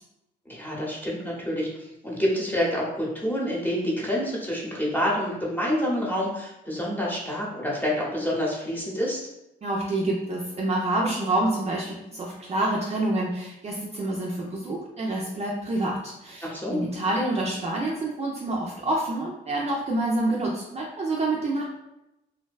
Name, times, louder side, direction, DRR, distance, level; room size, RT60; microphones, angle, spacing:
voice 1, 0.5-9.2 16.4-16.9, equal, 10° left, -5 dB, 0.8 m, -27 dB
voice 2, 9.6-21.6, right 2 dB, 35° right, -3 dB, 0.4 m, -27 dB
2.6 x 2.1 x 2.3 m, 0.89 s
cardioid pair, 90°, 20 cm